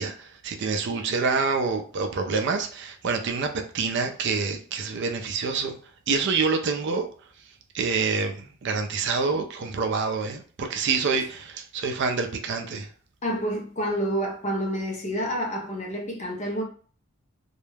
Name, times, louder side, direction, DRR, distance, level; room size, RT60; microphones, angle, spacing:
voice 1, 0.0-5.7 6.1-7.1 7.7-12.9, right 4 dB, 50° right, 0.4 m, -27 dB
voice 2, 13.2-16.6, equal, 30° left, 0.6 m, -28 dB
2.2 x 2.0 x 3.1 m
head